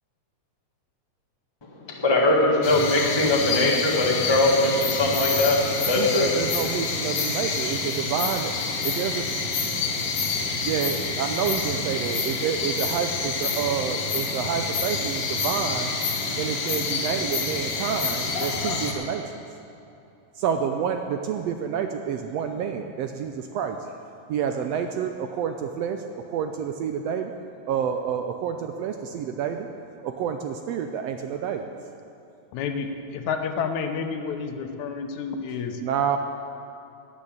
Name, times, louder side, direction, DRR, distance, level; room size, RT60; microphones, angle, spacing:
voice 1, 1.8-6.3, left 2 dB, 20° left, -2 dB, 0.7 m, -21 dB
sound 1, 2.6-18.9, left 4 dB, 55° left, 2.3 m, -27 dB
voice 2, 6.0-8.5 9.0-9.2 10.7-15.9 16.4-19.2 20.3-23.9 24.3-27.4 27.7-29.7 30.0-31.7 35.8-36.2, right 8 dB, 75° right, 6 dB, 1.5 m, -28 dB
voice 3, 32.5-35.8, left 6 dB, 80° left, 6 dB, 2.3 m, -30 dB
13.0 x 9.4 x 8.6 m, 2.7 s
omnidirectional pair, 3.4 m